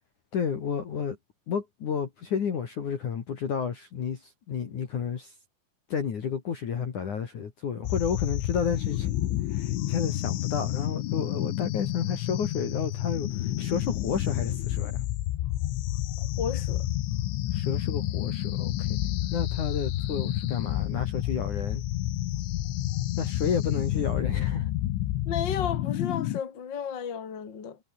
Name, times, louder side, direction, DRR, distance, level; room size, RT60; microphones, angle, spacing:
voice 1, 0.3-1.2 1.5-5.3 5.9-9.1 9.5-15.0 17.5-18.9 19.3-21.8 23.2-24.7, left 7 dB, 45° left, 3.2 m, -31 dB
sound 1, 7.9-26.4, left 14 dB, 80° left, 3.9 m, -30 dB
voice 2, 16.2-16.9 25.2-27.8, left 7 dB, 30° left, 2.9 m, -33 dB
omnidirectional pair, 5.7 m